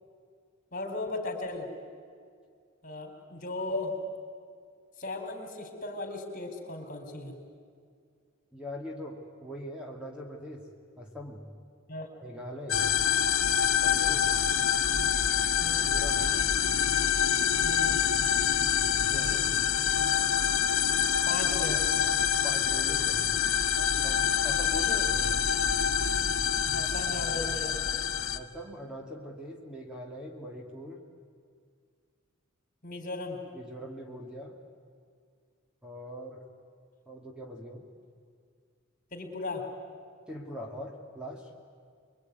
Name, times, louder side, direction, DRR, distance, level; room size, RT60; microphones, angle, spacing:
voice 1, 0.7-1.7 2.8-3.9 5.0-7.3 11.9-12.1 15.6-15.9 17.6-18.0 21.3-21.8 26.7-27.8 32.8-33.4 39.1-39.7, left 2 dB, 45° left, 4 dB, 4.1 m, -36 dB
voice 2, 8.5-10.7 11.0-11.5 12.2-12.9 13.8-14.4 15.9-16.3 19.0-19.5 22.4-23.2 23.8-25.3 28.3-31.0 33.5-34.6 35.8-36.5 37.1-37.9 40.3-41.5, equal, 5° right, 0 dB, 2.3 m, -42 dB
sound 1, 12.7-28.4, left 8 dB, 85° left, 1.2 m, -26 dB
25.0 x 23.0 x 9.5 m, 2.1 s
head